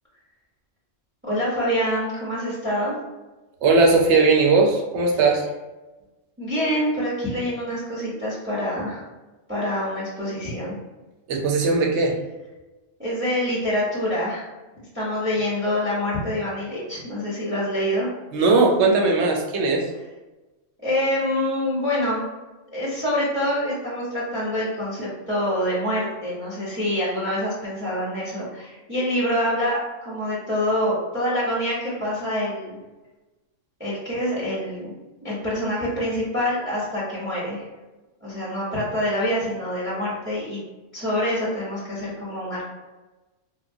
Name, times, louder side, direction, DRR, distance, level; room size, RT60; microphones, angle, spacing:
voice 1, 1.2-2.9 6.4-9.0 9.5-10.8 13.0-14.5 14.9-18.1 20.8-22.2 22.7-32.8 33.8-34.9 35.2-37.6 38.2-40.6 40.9-42.6, left 1 dB, 15° right, -7 dB, 0.5 m, -26 dB
voice 2, 3.6-5.5 11.3-12.2 18.3-19.9, right 3 dB, 70° right, 1 dB, 0.8 m, -18 dB
2.9 x 2.1 x 2.6 m, 1.1 s
omnidirectional pair, 1.3 m